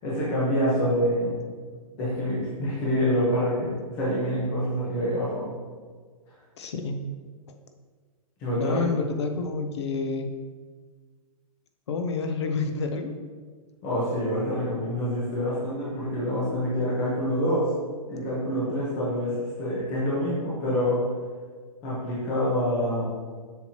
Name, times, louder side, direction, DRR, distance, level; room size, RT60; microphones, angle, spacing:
voice 1, 0.0-1.4 2.0-5.5 8.4-8.8 13.8-17.7 18.1-21.0 21.8-23.0, equal, 15° left, -7 dB, 1.0 m, -26 dB
voice 2, 6.6-7.0 8.5-10.3 11.9-13.1, left 4 dB, 50° left, 6 dB, 0.7 m, -28 dB
7.3 x 5.8 x 2.9 m, 1.5 s
hypercardioid pair, 180°, 19 cm